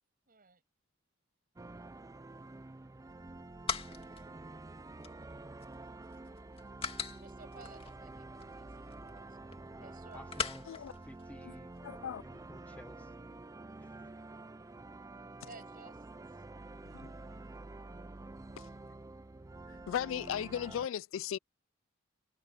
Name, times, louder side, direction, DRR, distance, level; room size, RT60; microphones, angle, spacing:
voice 1, 0.3-0.6 7.2-10.6 15.4-16.0 16.3-16.4 16.9-17.6, right 4 dB, 45° right, 7.1 m, -57 dB
sound 1, 1.6-20.9, right 2 dB, 15° right, 0.4 m, -49 dB
sound 2, 3.1-12.0, left 5 dB, 30° left, 2.3 m, -44 dB
voice 2, 9.7-13.4 13.8-14.1, left 1 dB, 5° left, 0.8 m, -54 dB
voice 3, 11.8-12.2 16.9-17.1 18.6-18.7 19.7-21.4, left 9 dB, 75° left, 0.3 m, -37 dB
head